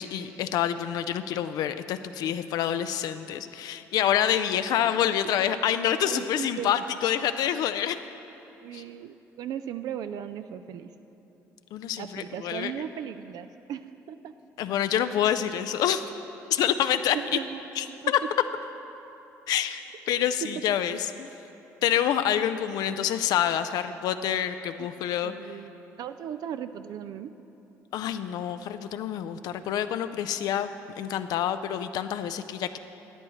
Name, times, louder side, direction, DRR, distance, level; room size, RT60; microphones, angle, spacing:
voice 1, 0.0-8.0 8.7-8.8 11.7-12.7 14.6-16.0 16.5-17.2 17.8-18.2 19.5-19.8 20.1-21.3 21.8-25.3 27.9-30.7 31.0-32.8, left 10 dB, 70° left, 10 dB, 0.4 m, -27 dB
voice 2, 6.0-6.8 8.6-10.9 12.0-14.3 16.6-16.7 17.1-18.0 24.8-24.9 25.2-27.3, right 9 dB, 65° right, 10 dB, 0.3 m, -37 dB
13.5 x 9.6 x 3.1 m, 3.0 s
supercardioid pair, 70°, 7 cm